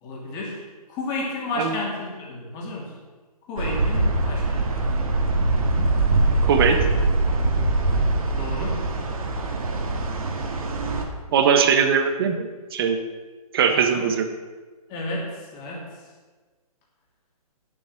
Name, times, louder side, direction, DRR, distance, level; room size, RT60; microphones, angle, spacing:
voice 1, 0.0-0.6 0.9-2.9 3.5-4.7 8.3-8.8 13.7-14.1 14.9-15.9, left 2 dB, 20° left, -2 dB, 2.9 m, -31 dB
sound 1, 3.6-11.0, right 2 dB, 65° right, 2.0 m, -23 dB
voice 2, 6.4-6.8 11.3-13.0 13.5-14.3, right 6 dB, 40° right, 6 dB, 1.3 m, -20 dB
9.5 x 7.8 x 7.7 m, 1.4 s
hypercardioid pair, 155°, 20 cm